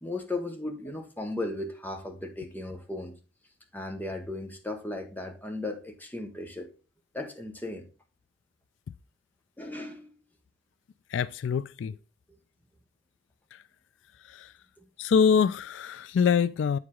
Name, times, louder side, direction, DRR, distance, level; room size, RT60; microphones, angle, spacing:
voice 1, 0.0-3.1 3.7-6.7 7.1-7.9 9.6-10.1 14.8-14.9, left 2 dB, 10° left, 1.1 m, -36 dB
voice 2, 11.1-12.0 13.5-13.6 14.2-14.5 15.0-16.8, left 6 dB, 70° left, 0.3 m, -25 dB
8.1 x 4.8 x 3.7 m
head